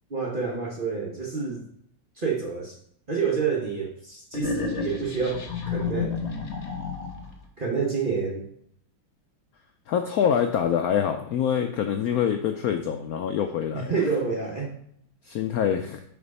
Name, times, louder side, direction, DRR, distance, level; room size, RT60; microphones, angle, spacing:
voice 1, 0.1-1.7 2.2-2.7 3.1-6.2 7.6-8.4 13.7-14.8, right 5 dB, 40° right, -1 dB, 0.8 m, -28 dB
sound 1, 4.3-7.4, left 5 dB, 40° left, 1.2 m, -31 dB
voice 2, 9.9-13.9 15.2-16.0, left 8 dB, 80° left, 6 dB, 0.8 m, -25 dB
6.8 x 4.8 x 5.3 m, 0.70 s
omnidirectional pair, 2.1 m